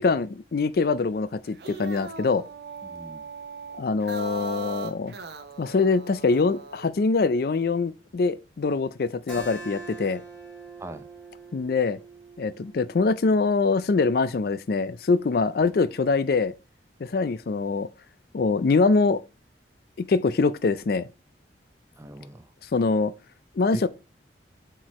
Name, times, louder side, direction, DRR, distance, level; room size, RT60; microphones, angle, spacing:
voice 1, 0.0-2.4 3.8-5.1 5.6-10.2 11.5-12.0 12.4-16.5 17.0-17.9 18.3-19.2 20.0-21.1 22.7-23.1 23.6-23.9, left 4 dB, 55° left, 0.4 m, -24 dB
sound 1, 1.4-6.9, right 4 dB, 65° right, 0.9 m, -39 dB
voice 2, 2.8-3.3 10.8-11.1 15.6-15.7 22.0-22.5 23.7-23.9, right 1 dB, 15° right, 0.6 m, -40 dB
Keyboard (musical), 9.3-14.5, right 3 dB, ahead, 3.8 m, -44 dB
7.6 x 4.6 x 3.1 m
head